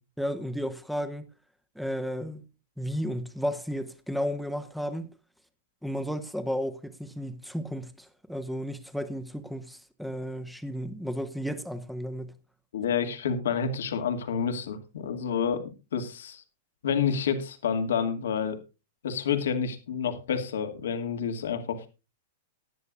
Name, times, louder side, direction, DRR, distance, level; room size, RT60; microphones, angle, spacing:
voice 1, 0.2-1.3 1.7-2.4 2.8-5.1 5.8-12.4, equal, ahead, 1.5 m, -33 dB
voice 2, 12.7-16.4 16.8-18.6 19.0-21.9, left 7 dB, 80° left, 2.2 m, -29 dB
18.5 x 10.5 x 2.5 m
hypercardioid pair, 120°, 0 cm